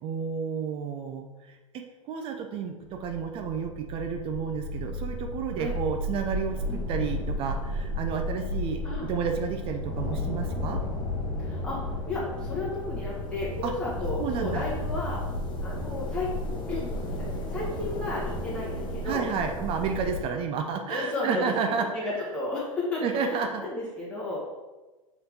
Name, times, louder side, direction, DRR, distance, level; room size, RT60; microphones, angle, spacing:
voice 1, 0.0-10.8 13.6-13.7 14.2-14.6 19.0-21.9 23.0-23.7, right 6 dB, 30° right, 5 dB, 0.5 m, -31 dB
sound 1, 2.8-20.2, left 1 dB, 25° left, 1.2 m, -33 dB
voice 2, 11.4-15.2 15.6-16.3 16.7-19.3 20.9-21.5 21.9-24.5, left 2 dB, 5° left, -8 dB, 1.7 m, -33 dB
7.6 x 3.9 x 3.5 m, 1.2 s
figure-of-eight pair, 90°, 18 cm